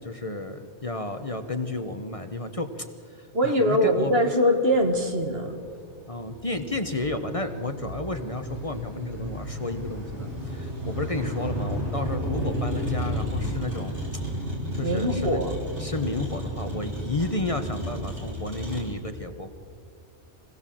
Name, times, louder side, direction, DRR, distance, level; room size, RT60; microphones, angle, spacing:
voice 1, 0.0-2.9 3.1-4.2 6.1-14.0 14.7-15.4 15.8-19.5, left 2 dB, 30° left, 7 dB, 1.1 m, -32 dB
voice 2, 3.3-5.6 14.8-15.5, equal, 60° right, 5 dB, 2.1 m, -22 dB
Motor vehicle (road), 4.7-18.8, equal, 80° right, 5.0 m, -32 dB
25.0 x 17.0 x 7.7 m, 2.2 s
omnidirectional pair, 1.2 m